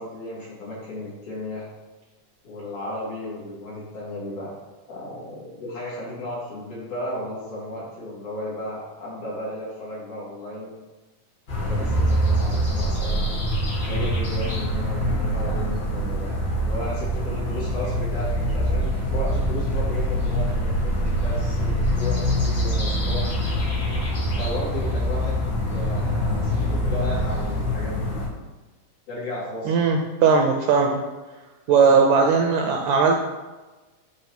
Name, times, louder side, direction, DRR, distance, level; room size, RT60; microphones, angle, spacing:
voice 1, 0.0-1.6 2.4-4.5 4.9-10.7 11.5-13.3 13.9-23.2 24.4-28.2 29.1-29.8 31.7-32.1, left 1 dB, 60° left, -8 dB, 4.1 m, -34 dB
sound 1, 11.5-28.3, equal, 40° left, 2.3 m, -24 dB
voice 2, 29.7-31.0 31.7-33.2, right 5 dB, 75° right, 2 dB, 1.7 m, -18 dB
8.6 x 3.3 x 5.8 m, 1.2 s
omnidirectional pair, 3.7 m